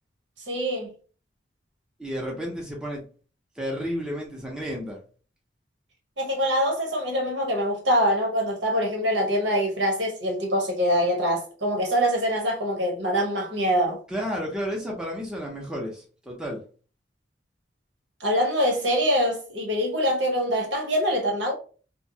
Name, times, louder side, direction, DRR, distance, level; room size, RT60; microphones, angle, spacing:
voice 1, 0.5-0.9 6.2-14.0 18.2-21.5, equal, 75° right, 1.0 m, -24 dB
voice 2, 2.0-3.0 3.6-5.0 14.1-16.6, equal, 5° right, 0.6 m, -32 dB
2.7 x 2.1 x 2.6 m
head